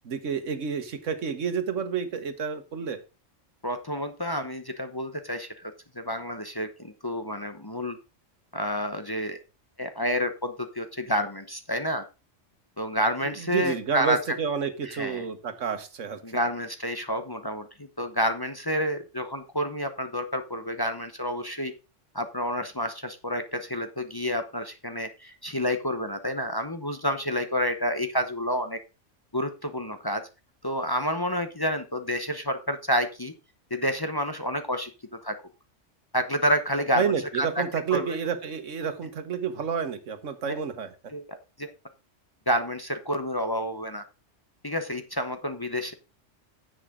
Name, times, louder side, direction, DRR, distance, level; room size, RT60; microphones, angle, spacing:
voice 1, 0.0-3.0 13.4-16.4 36.9-40.9, right 6 dB, 85° right, 10 dB, 1.5 m, -30 dB
voice 2, 3.6-8.0 8.5-9.4 9.8-12.1 12.8-14.4 14.9-15.2 16.2-17.7 18.0-21.7 22.1-28.8 29.3-30.3 30.6-33.3 33.7-34.9 35.2-35.4 36.1-37.0 37.4-37.6 37.9-38.2 40.5-40.6 41.1-41.7 42.5-44.0 44.6-45.9, equal, 20° left, 7 dB, 0.8 m, -29 dB
10.0 x 8.0 x 3.7 m, 0.29 s
omnidirectional pair, 1.2 m